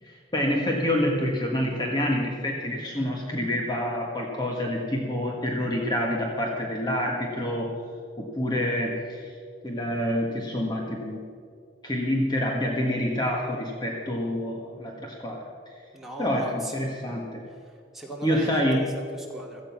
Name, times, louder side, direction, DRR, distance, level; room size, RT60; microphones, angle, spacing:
voice 1, 0.0-7.7 8.2-9.3 9.6-11.2 11.8-15.4 16.2-17.4 18.2-18.8, equal, 25° left, -1 dB, 1.6 m, -27 dB
voice 2, 15.9-16.7 17.6-19.6, equal, ahead, -2 dB, 2.6 m, -37 dB
17.0 x 14.0 x 5.9 m, 2.2 s
head